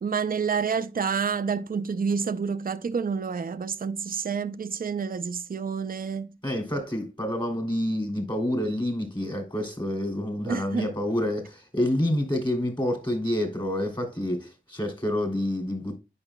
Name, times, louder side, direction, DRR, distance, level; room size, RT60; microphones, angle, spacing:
voice 1, 0.0-6.3 10.5-10.9, right 6 dB, 45° right, 0.5 m, -28 dB
voice 2, 6.4-16.0, left 1 dB, 20° left, 2.9 m, -28 dB
9.8 x 5.4 x 2.2 m
wide cardioid pair, 60°, 20 cm